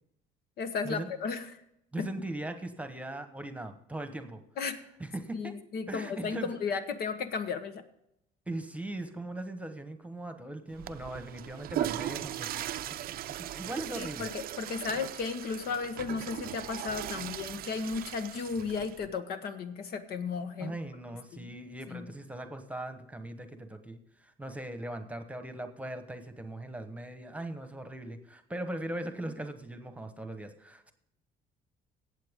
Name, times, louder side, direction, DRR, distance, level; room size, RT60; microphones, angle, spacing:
voice 1, 0.6-1.6 2.0-2.1 4.6-4.8 5.3-7.8 13.9-20.8 21.3-21.5 21.9-22.1, left 5 dB, 65° left, 9 dB, 1.2 m, -34 dB
voice 2, 1.9-4.4 5.0-5.6 5.9-6.6 8.5-14.3 20.6-30.9, right 1 dB, 10° right, 8 dB, 1.1 m, -39 dB
Water / Toilet flush, 10.7-19.1, right 13 dB, 60° right, 0.5 m, -38 dB
16.5 x 7.8 x 3.7 m, 0.79 s
cardioid pair, 110°, 17 cm